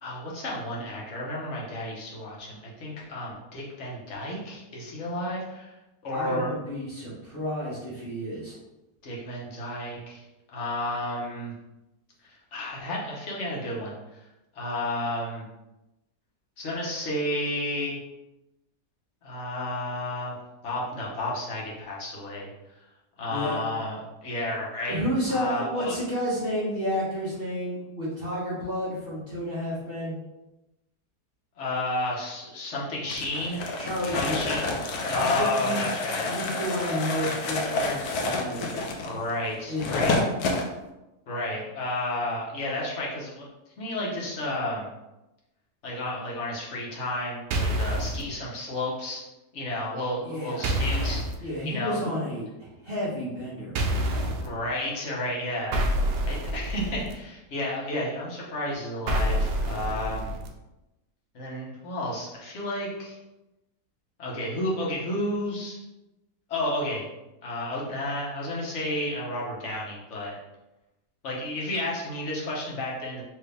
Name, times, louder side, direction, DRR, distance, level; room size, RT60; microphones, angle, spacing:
voice 1, 0.0-5.7 6.0-6.5 9.0-10.2 10.5-11.5 12.5-13.9 14.5-15.4 16.6-18.0 19.2-20.3 20.6-22.5 23.2-25.0 25.3-26.0 31.6-33.7 34.1-36.3 39.0-40.2 41.3-43.5 43.8-44.9 45.8-49.2 49.5-52.1 54.4-55.8 56.2-60.3 61.3-63.2 64.2-65.8 66.5-67.1 67.4-70.4 71.2-73.2, left 1 dB, 45° left, -4 dB, 1.3 m, -32 dB
voice 2, 6.1-8.6 23.3-23.6 24.9-30.2 33.8-34.5 35.1-35.8 36.3-38.7 39.7-40.4 50.2-50.7 51.4-54.4, equal, 35° right, -9 dB, 1.4 m, -31 dB
sound 1, 33.1-40.7, left 2 dB, 70° left, 1.1 m, -29 dB
sound 2, 47.5-48.2 50.6-51.3 53.7-54.5 55.7-57.1 59.1-60.5, right 1 dB, 80° right, 1.3 m, -27 dB
4.5 x 2.9 x 3.4 m, 0.98 s
omnidirectional pair, 1.8 m